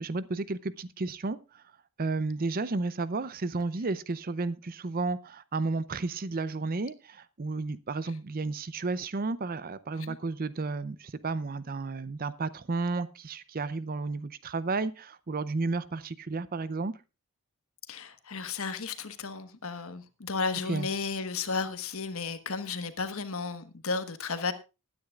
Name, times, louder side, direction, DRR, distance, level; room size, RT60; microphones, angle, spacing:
voice 1, 0.0-1.6 2.0-17.0 20.7-20.9, right 3 dB, 40° right, 0.6 m, -32 dB
voice 2, 17.9-24.5, left 4 dB, 65° left, 1.3 m, -33 dB
20.0 x 9.7 x 2.4 m
head